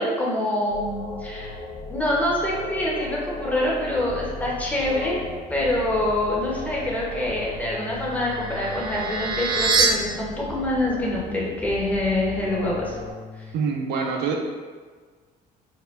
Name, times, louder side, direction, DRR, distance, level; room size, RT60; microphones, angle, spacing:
voice 1, 0.0-1.5 1.9-5.2 5.5-13.0, left 1 dB, 10° left, -5 dB, 0.7 m, -25 dB
sound 1, 0.7-13.1, left 3 dB, 90° left, 0.8 m, -37 dB
Bass guitar, 4.0-13.5, left 4 dB, 50° left, 0.5 m, -42 dB
sound 2, 7.6-9.9, right 4 dB, 25° right, 0.4 m, -25 dB
voice 2, 13.5-14.4, right 5 dB, 85° right, 1 dB, 0.5 m, -25 dB
4.6 x 2.1 x 2.4 m, 1.5 s
cardioid pair, 110°, 17 cm